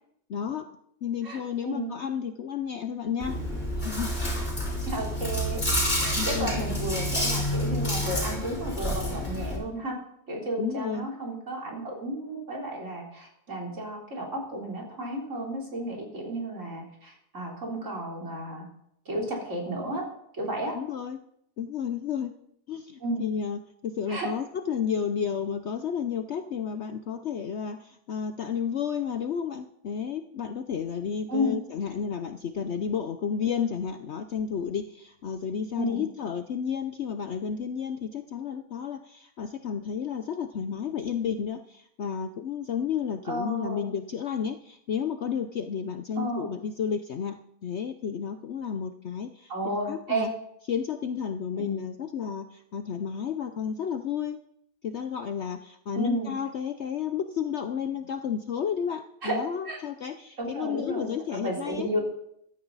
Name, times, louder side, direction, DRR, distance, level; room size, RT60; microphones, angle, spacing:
voice 1, 0.3-0.7 1.0-3.4 3.8-4.1 6.2-6.5 10.6-11.1 20.7-21.2 21.6-22.3 22.7-50.3 50.7-54.4 54.8-61.9, left 7 dB, 55° left, 8 dB, 0.8 m, -32 dB
voice 2, 1.2-1.9 4.9-5.6 6.0-10.0 10.3-18.7 19.1-20.1 20.4-20.8 23.0-23.3 24.1-24.3 31.3-31.6 35.8-36.0 43.3-43.9 46.2-46.5 49.5-50.3 51.6-51.8 56.0-56.3 59.2-59.4 59.7-59.8 60.4-62.0, right 1 dB, 50° right, -2 dB, 3.9 m, -32 dB
Chewing mastication, 3.2-9.6, equal, 40° left, 5.4 m, -28 dB
15.5 x 13.0 x 4.0 m, 0.74 s
omnidirectional pair, 1.7 m